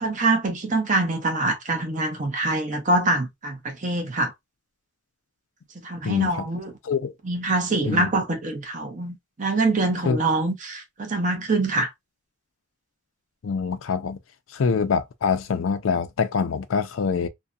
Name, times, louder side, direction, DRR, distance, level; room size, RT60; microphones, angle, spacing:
voice 1, 0.0-4.3 5.8-6.7 7.2-11.9, right 2 dB, 40° right, 0.6 m, -24 dB
voice 2, 6.0-6.4 6.8-7.1 7.8-8.1 10.0-10.2 11.6-11.7 13.4-14.2 14.5-17.3, left 5 dB, 90° left, 0.4 m, -25 dB
2.6 x 2.2 x 2.2 m
head